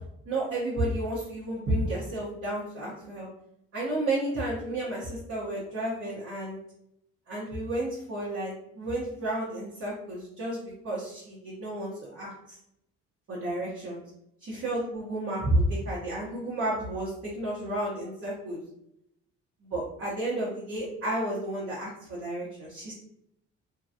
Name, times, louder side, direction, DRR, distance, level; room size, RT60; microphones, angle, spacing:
voice 1, 0.3-3.3 3.7-6.6 7.3-12.6 13.3-14.0 14.5-18.6 19.7-22.9, right 1 dB, 50° right, -8 dB, 1.2 m, -31 dB
2.9 x 2.9 x 2.5 m, 0.76 s
cardioid pair, 90°, 30 cm